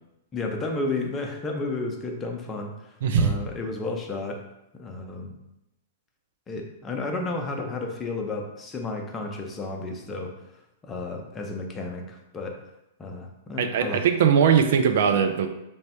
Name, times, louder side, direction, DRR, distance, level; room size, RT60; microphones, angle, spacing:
voice 1, 0.3-4.4 4.7-5.3 6.5-10.3 10.8-12.6 13.0-14.0, left 2 dB, 20° left, 2 dB, 0.6 m, -32 dB
voice 2, 3.0-3.4 13.6-15.5, right 7 dB, 65° right, 7 dB, 0.4 m, -20 dB
3.4 x 2.0 x 4.2 m, 0.88 s
hypercardioid pair, 110°, 0 cm